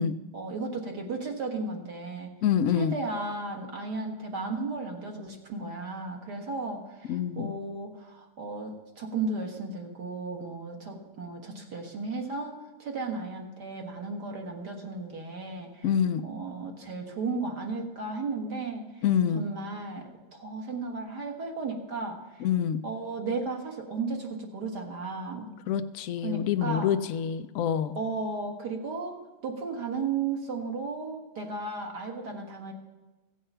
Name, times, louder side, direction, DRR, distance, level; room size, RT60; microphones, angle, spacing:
voice 1, 0.3-2.3 2.7-15.9 16.2-19.1 19.3-22.5 22.8-25.5 26.2-26.9 28.0-32.7, right 3 dB, 60° right, 2 dB, 2.1 m, -35 dB
voice 2, 2.4-2.9 7.1-7.5 15.8-16.2 19.0-19.4 22.4-22.8 25.7-28.0, left 8 dB, 90° left, 11 dB, 0.7 m, -26 dB
15.5 x 7.8 x 5.6 m, 1.1 s
omnidirectional pair, 2.1 m